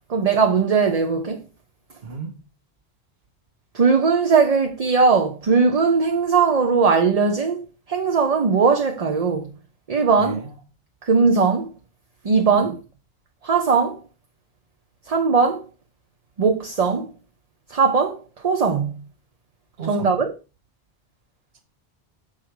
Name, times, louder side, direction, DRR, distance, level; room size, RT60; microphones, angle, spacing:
voice 1, 0.1-1.4 3.7-9.5 9.9-10.5 11.0-11.7 12.2-12.8 13.4-14.0 15.1-15.7 16.4-17.1 17.7-18.9 19.8-20.3, right 5 dB, 40° right, 0.7 m, -19 dB
voice 2, 2.0-2.5 10.2-10.6 12.5-12.7 19.8-20.1, right 4 dB, 70° right, 1.5 m, -33 dB
7.4 x 5.0 x 4.6 m
omnidirectional pair, 1.1 m